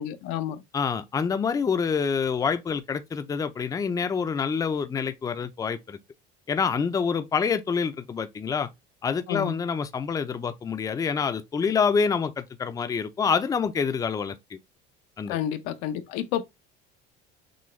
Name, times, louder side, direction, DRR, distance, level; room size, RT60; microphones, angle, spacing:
voice 1, 0.0-0.6 9.3-9.6 15.3-16.4, left 10 dB, 85° left, 0.7 m, -30 dB
voice 2, 0.7-6.0 6.5-8.7 9.0-14.6 15.2-15.4, left 6 dB, 20° left, 0.4 m, -27 dB
6.1 x 2.2 x 3.1 m
cardioid pair, 120°, 20 cm